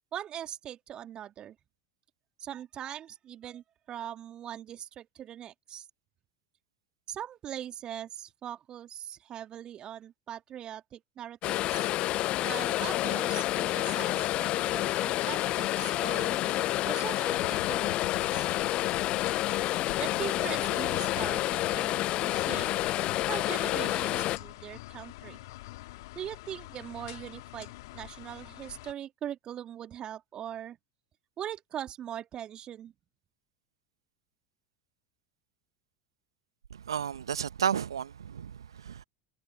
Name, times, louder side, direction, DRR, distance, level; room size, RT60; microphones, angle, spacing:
voice 1, 0.1-1.6 2.4-5.9 7.1-11.9 12.4-18.5 20.0-22.8 23.2-25.4 26.2-30.8 31.4-32.9, right 10 dB, 40° right, 2.4 m, -41 dB
sound 1, 11.4-24.4, left 16 dB, 45° left, 0.6 m, -29 dB
sound 2, 17.2-28.9, left 19 dB, 65° left, 2.1 m, -45 dB
voice 2, 36.7-39.0, right 8 dB, 75° right, 1.4 m, -32 dB
figure-of-eight pair, 75°, 2 cm